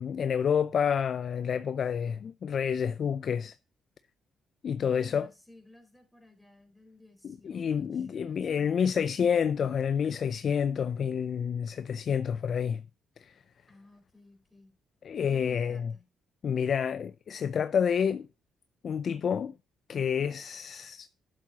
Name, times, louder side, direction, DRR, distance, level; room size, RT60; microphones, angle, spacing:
voice 1, 0.0-3.5 4.6-5.3 7.2-12.8 13.2-13.3 15.0-15.9 16.4-18.3 18.8-19.5 19.9-21.1, left 7 dB, 55° left, 0.4 m, -29 dB
voice 2, 4.8-9.3 13.7-14.7 15.3-16.0, left 2 dB, 5° left, 4.2 m, -56 dB
11.5 x 7.4 x 2.9 m
cardioid pair, 90°, 0 cm